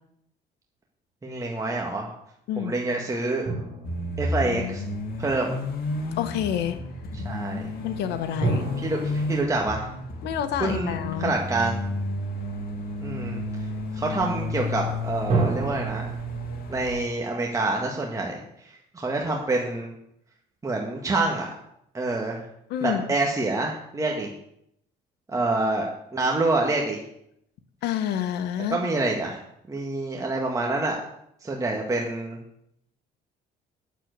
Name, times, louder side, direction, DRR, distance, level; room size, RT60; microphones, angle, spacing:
voice 1, 1.2-2.1 2.6-3.5 4.2-4.8 5.2-5.6 7.3-7.7 8.8-9.9 10.6-11.9 13.0-13.4 13.9-16.1 16.7-19.9 20.6-21.5 21.9-22.4 22.8-24.3 25.3-27.0 28.7-29.4 29.7-31.0 31.4-32.4, right 2 dB, 20° right, -1 dB, 1.7 m, -27 dB
sound 1, 3.4-5.4 8.4-11.7 15.3-15.7, right 3 dB, 40° right, 5.2 m, -30 dB
sound 2, 3.8-17.0, left 2 dB, 60° left, 2.3 m, -32 dB
voice 2, 6.2-6.8 7.8-8.7 10.2-11.3 22.7-23.0 27.8-28.9, left 10 dB, 80° left, 9 dB, 1.3 m, -28 dB
9.2 x 7.4 x 8.2 m, 0.75 s
cardioid pair, 110°, 17 cm